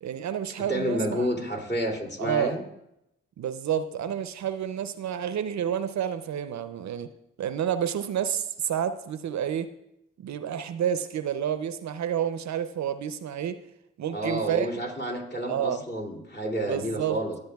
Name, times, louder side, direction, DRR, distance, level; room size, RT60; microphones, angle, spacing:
voice 1, 0.0-1.3 2.2-2.6 3.4-7.1 7.4-9.7 10.2-13.6 14.0-14.7 15.5-15.8 16.6-17.2, right 9 dB, 65° right, 12 dB, 0.6 m, -29 dB
voice 2, 0.6-2.6 14.1-17.4, equal, 35° left, 0 dB, 2.7 m, -30 dB
16.0 x 7.8 x 2.3 m, 0.82 s
supercardioid pair, 50°, 30 cm